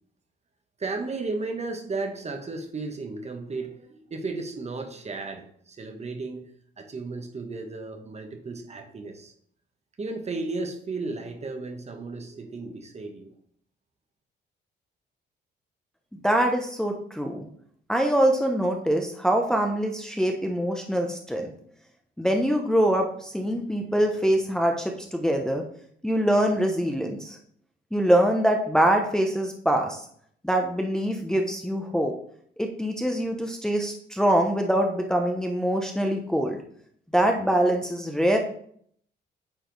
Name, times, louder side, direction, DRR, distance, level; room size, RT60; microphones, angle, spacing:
voice 1, 0.8-6.5 6.8-9.3 10.0-13.3, right 3 dB, 35° right, 5 dB, 1.1 m, -34 dB
voice 2, 16.2-17.5 17.9-21.5 22.2-25.6 26.0-27.4 27.9-30.0 30.4-32.1 32.6-36.6 37.1-38.4, right 1 dB, 5° left, 2 dB, 0.8 m, -24 dB
9.0 x 3.3 x 4.0 m, 0.63 s
cardioid pair, 90°, 20 cm